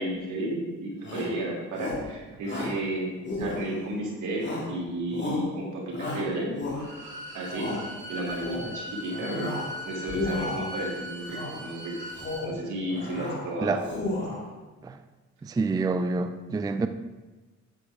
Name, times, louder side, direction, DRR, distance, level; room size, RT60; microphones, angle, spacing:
voice 1, 0.0-3.1 3.4-4.4 4.7-6.9 7.3-7.8 8.1-9.5 9.8-12.0 12.4-14.2, right 1 dB, 80° right, -3 dB, 2.8 m, -32 dB
Shout, 1.0-1.4 1.7-2.1 2.4-2.8 3.2-3.9 4.4-4.8 5.1-5.5 5.9-7.0 7.4-7.8 8.3-8.7 9.1-9.7 10.0-10.7 11.2-11.6 12.0-12.6 12.9-13.4 13.8-14.5, left 2 dB, 35° left, 2.6 m, -33 dB
Bowed string instrument, 6.7-12.4, left 1 dB, 40° right, 3.1 m, -39 dB
voice 2, 15.6-16.9, right 3 dB, 15° right, 9 dB, 0.4 m, -26 dB
9.4 x 7.3 x 3.6 m, 1.2 s
cardioid pair, 90°, 30 cm